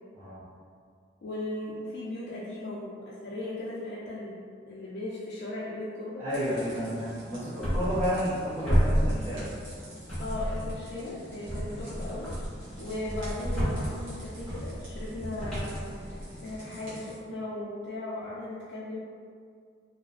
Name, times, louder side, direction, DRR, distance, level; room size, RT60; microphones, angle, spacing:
voice 1, 1.2-4.4 4.7-6.2 10.2-12.3 12.8-19.0, left 1 dB, 55° left, -9 dB, 0.3 m, -37 dB
voice 2, 6.2-9.5, equal, 30° right, -13 dB, 0.5 m, -31 dB
sound 1, 6.3-17.2, right 1 dB, 80° right, 1.0 m, -46 dB
sound 2, 7.6-8.4 8.7-9.7 10.1-10.9 11.5-16.6, equal, 5° left, 1.0 m, -31 dB
2.6 x 2.0 x 2.4 m, 2.1 s
head